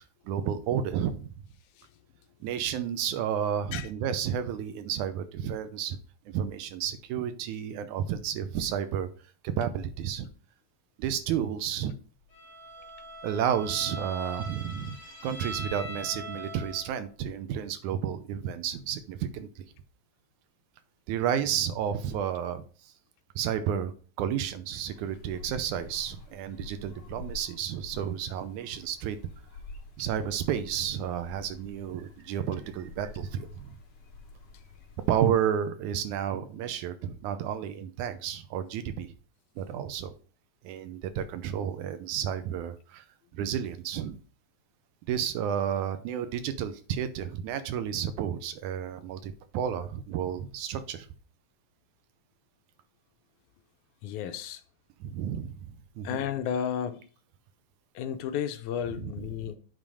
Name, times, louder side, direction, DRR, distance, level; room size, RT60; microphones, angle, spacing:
voice 1, 0.3-1.3 2.4-6.0 6.3-9.1 9.6-10.3 11.0-11.9 13.2-15.0 15.2-19.7 21.1-22.6 23.4-23.9 24.2-29.2 30.0-33.8 35.1-39.1 39.6-40.1 40.6-43.1 43.3-44.2 45.1-51.1 55.0-56.2 59.0-59.1, right 9 dB, 80° right, 2.1 m, -31 dB
Bowed string instrument, 12.3-17.0, right 1 dB, 30° left, 3.1 m, -41 dB
sound 1, 24.8-35.3, left 3 dB, 55° left, 2.2 m, -48 dB
voice 2, 54.0-54.6 56.0-57.0 58.0-59.6, left 9 dB, 80° left, 2.0 m, -32 dB
8.9 x 3.8 x 4.9 m
omnidirectional pair, 3.6 m